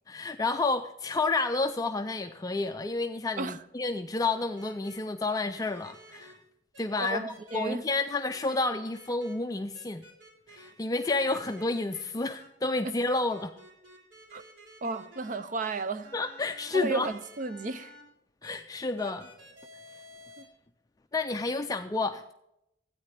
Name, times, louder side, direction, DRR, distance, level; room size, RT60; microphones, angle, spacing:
voice 1, 0.1-6.3 6.8-10.0 10.5-13.5 16.1-17.1 18.4-19.3 21.1-22.3, left 3 dB, 20° left, 0.4 m, -30 dB
sound 1, 4.6-5.0 5.6-6.3 6.7-7.6 8.1-8.6 8.9-9.3 9.7-10.7 11.0-12.5 13.3-18.0 18.4-18.6 19.0-20.4, right 1 dB, 90° right, 3.1 m, -52 dB
voice 2, 7.0-7.8 12.8-12.9 14.3-14.4 14.8-16.1 16.7-17.9 20.4-20.5, right 3 dB, 45° right, 0.5 m, -33 dB
12.5 x 9.2 x 3.3 m
head